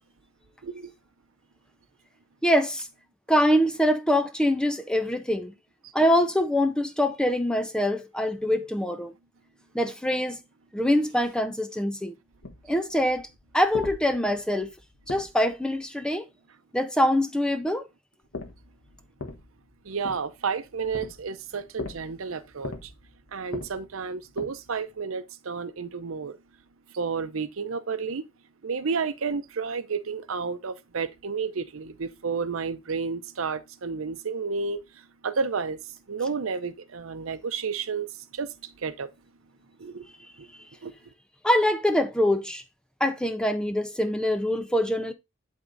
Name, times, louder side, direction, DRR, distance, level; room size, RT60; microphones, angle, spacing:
voice 1, 2.4-2.9 3.3-5.5 5.9-9.1 9.7-10.4 10.7-12.1 12.7-13.3 13.5-14.7 15.1-16.2 16.7-17.9 41.4-42.6 43.0-45.1, equal, 5° left, 0.5 m, -24 dB
sound 1, 12.4-15.8 18.2-24.9, left 2 dB, 70° left, 1.5 m, -41 dB
voice 2, 19.9-22.9 23.3-26.4 26.9-28.2 28.6-34.8 35.2-35.8 36.1-38.1 38.3-38.5 38.8-39.1 39.8-40.0 40.8-40.9, right 5 dB, 85° right, 0.7 m, -31 dB
11.0 x 3.7 x 3.9 m
head